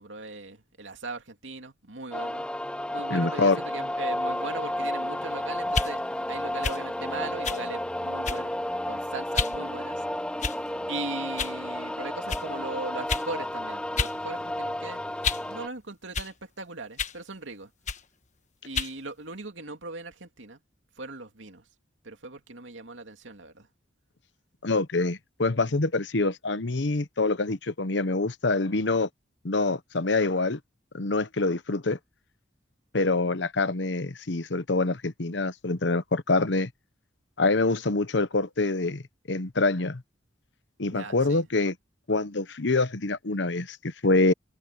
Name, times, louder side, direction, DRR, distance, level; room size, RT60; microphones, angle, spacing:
voice 1, 0.0-2.5 2.9-6.0 6.3-8.5 8.9-10.0 10.9-15.0 15.5-17.7 18.6-20.6 21.0-21.6 22.0-23.7 40.9-41.4, right 3 dB, 90° right, 2.6 m, -39 dB
sound 1, 2.1-15.7, left 1 dB, 5° left, 0.7 m, -32 dB
voice 2, 3.1-3.6 24.6-29.1 29.4-30.6 30.9-32.0 32.9-36.7 37.4-39.0 39.3-40.0 40.8-41.8 42.1-44.3, left 3 dB, 70° left, 1.0 m, -25 dB
sound 2, 5.7-5.9 6.6-6.8 7.4-7.6 8.2-8.6 9.3-9.6 10.4-10.8 11.4-11.6 12.3-12.5 13.1-13.3 14.0-14.2 14.5-15.5 16.1-16.3 17.0-17.2 17.9-18.1 18.7-19.0, left 5 dB, 40° left, 1.3 m, -30 dB
head